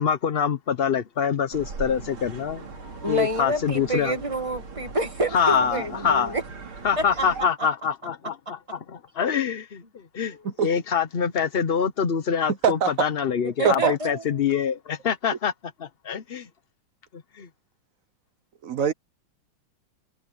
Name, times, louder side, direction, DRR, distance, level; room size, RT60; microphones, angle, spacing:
voice 1, 0.0-2.7 3.1-4.2 5.3-6.3 6.8-15.5 15.8-16.5 17.4-17.5, left 7 dB, 60° left, 0.6 m, -25 dB
sound 1, 1.5-7.5, right 4 dB, 80° right, 4.1 m, -39 dB
voice 2, 3.0-6.4 7.0-7.3 10.2-10.4 13.6-14.2, right 1 dB, 15° right, 1.8 m, -28 dB
voice 3, 12.6-13.1 13.6-14.0 18.6-18.9, right 7 dB, 55° right, 1.0 m, -22 dB
omnidirectional pair, 2.2 m